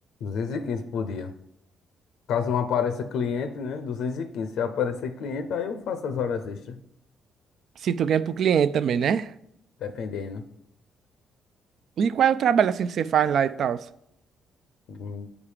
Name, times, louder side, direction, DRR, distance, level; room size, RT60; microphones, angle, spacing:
voice 1, 0.2-1.3 2.3-6.8 9.8-10.4 14.9-15.3, left 6 dB, 80° left, 0.6 m, -29 dB
voice 2, 7.8-9.3 12.0-13.8, right 8 dB, 65° right, 0.3 m, -22 dB
7.2 x 4.9 x 4.9 m
cardioid pair, 90°, 0 cm